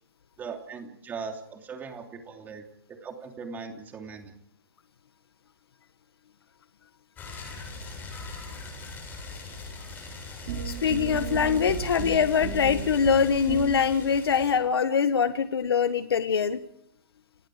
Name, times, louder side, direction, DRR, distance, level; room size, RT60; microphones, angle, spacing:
voice 1, 0.4-2.6 3.0-4.3, right 5 dB, 15° right, 4 dB, 3.0 m, -39 dB
sound 1, 7.2-14.5, left 3 dB, 15° left, 7.4 m, -41 dB
sound 2, 10.5-14.0, right 7 dB, 45° right, 4.0 m, -33 dB
voice 2, 10.6-16.6, left 7 dB, 85° left, 11 dB, 1.4 m, -23 dB
29.0 x 18.0 x 5.0 m, 0.73 s
hypercardioid pair, 155°, 13 cm